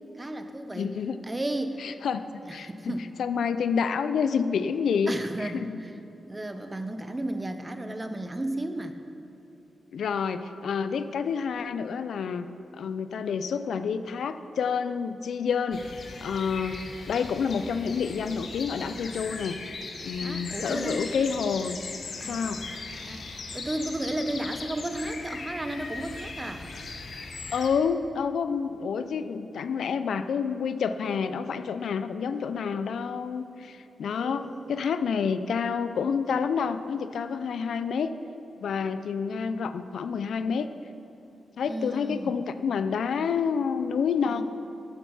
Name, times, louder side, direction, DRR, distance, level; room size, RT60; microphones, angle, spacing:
voice 1, 0.1-0.9 1.2-1.8 2.4-3.1 5.1-5.9 6.3-9.0 20.2-21.1 22.2-22.7 23.1-26.7 34.1-34.7 41.7-42.3 44.2-44.4, right 1 dB, 20° right, 8 dB, 0.9 m, -34 dB
voice 2, 0.7-1.2 1.8-2.2 2.5-2.9 3.2-5.8 9.9-12.5 12.8-15.8 16.2-16.8 17.1-19.6 20.0-21.8 22.2-22.6 27.5-38.1 38.6-40.7 41.6-44.4, left 6 dB, 80° left, 11 dB, 0.5 m, -28 dB
sound 1, 15.7-27.7, left 3 dB, 65° left, 1.3 m, -39 dB
12.5 x 9.3 x 5.6 m, 2.9 s
cardioid pair, 85°, 0 cm